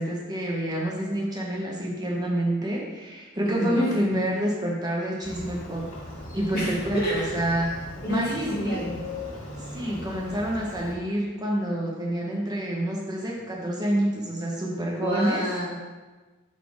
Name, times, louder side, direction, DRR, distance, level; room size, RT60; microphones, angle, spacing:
voice 1, 0.0-5.8 6.3-7.8 8.1-8.8 9.6-15.4, right 1 dB, 20° right, -3 dB, 0.7 m, -28 dB
voice 2, 3.4-3.9 6.5-7.3 8.0-8.3 8.5-8.9 14.7-15.7, equal, 45° left, -5 dB, 1.9 m, -29 dB
Motorcycle, 5.2-10.9, left 2 dB, 70° left, 1.6 m, -39 dB
6.5 x 4.2 x 4.7 m, 1.3 s
head